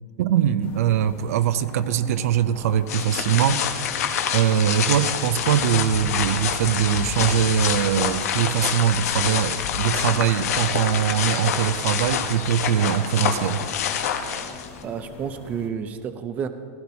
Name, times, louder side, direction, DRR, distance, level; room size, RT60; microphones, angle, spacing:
voice 1, 0.2-3.7 4.3-13.6, right 9 dB, 75° right, 13 dB, 0.5 m, -22 dB
sound 1, 0.6-15.7, left 4 dB, 50° left, 1.5 m, -43 dB
sound 2, 2.9-14.8, left 8 dB, 85° left, 1.1 m, -26 dB
voice 2, 14.8-16.5, right 7 dB, 20° right, 10 dB, 0.4 m, -30 dB
16.0 x 13.0 x 2.8 m, 2.2 s
supercardioid pair, 170°, 8 cm